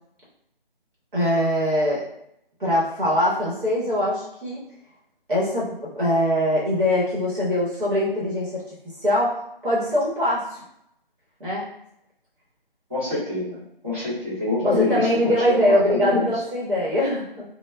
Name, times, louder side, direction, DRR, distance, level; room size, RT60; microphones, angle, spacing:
voice 1, 1.1-2.0 2.6-4.6 5.3-8.6 9.0-10.6 11.4-11.6 14.6-17.4, left 1 dB, 60° right, -6 dB, 1.0 m, -22 dB
voice 2, 12.9-16.3, left 2 dB, 15° right, -14 dB, 0.8 m, -26 dB
2.1 x 2.1 x 3.3 m, 0.76 s
figure-of-eight pair, 165°, 29 cm